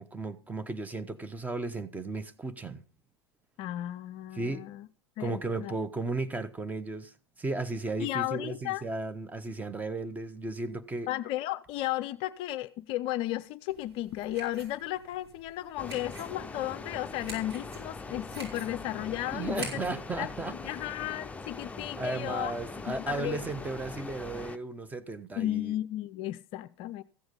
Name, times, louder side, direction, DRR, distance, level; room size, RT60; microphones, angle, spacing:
voice 1, 0.0-2.8 4.3-4.6 5.2-7.1 7.4-11.1 19.3-20.5 22.0-25.7, right 3 dB, 10° right, 1.1 m, -35 dB
voice 2, 3.6-4.9 5.2-5.7 8.0-8.8 11.1-19.8 20.2-22.5 22.9-23.4 25.4-27.0, left 14 dB, 40° left, 0.5 m, -34 dB
sound 1, 13.7-20.0, right 3 dB, 70° right, 5.6 m, -47 dB
sound 2, 15.8-24.6, left 3 dB, 10° left, 0.8 m, -42 dB
14.5 x 7.9 x 5.3 m
figure-of-eight pair, 90°, 14 cm